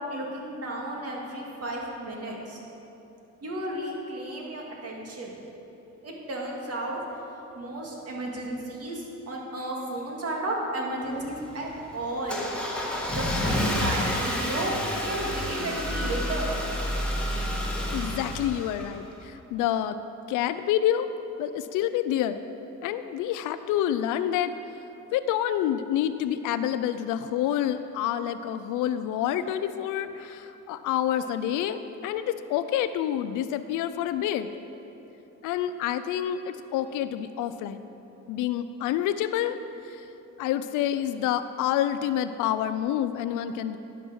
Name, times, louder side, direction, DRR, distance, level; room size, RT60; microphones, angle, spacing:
voice 1, 0.1-2.6 3.4-5.4 6.0-7.0 7.6-12.5 13.1-16.5, right 1 dB, 55° right, -1 dB, 2.1 m, -33 dB
Car / Engine starting, 11.0-19.2, left 1 dB, 5° left, 1.7 m, -30 dB
voice 2, 17.9-19.9 20.3-21.1 21.4-22.4 22.8-24.5 25.1-34.5 35.4-37.8 38.3-39.6 39.8-40.0 40.4-43.8, left 11 dB, 90° left, 11 dB, 0.5 m, -28 dB
10.5 x 5.9 x 6.3 m, 3.0 s
cardioid pair, 90°, 30 cm